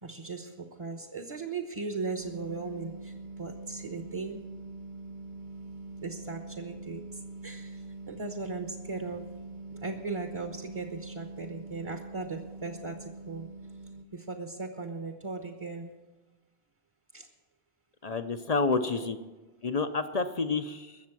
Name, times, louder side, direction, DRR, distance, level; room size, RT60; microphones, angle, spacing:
voice 1, 0.0-4.4 6.0-9.2 9.7-13.5 14.1-15.9 17.1-17.3 18.8-19.1, right 3 dB, 30° right, 5 dB, 1.1 m, -38 dB
sound 1, 2.2-14.0, right 3 dB, 50° right, 0.9 m, -44 dB
voice 2, 18.0-19.2 19.6-21.0, left 4 dB, 45° left, 9 dB, 0.6 m, -29 dB
21.5 x 7.2 x 6.0 m, 1.2 s
omnidirectional pair, 1.1 m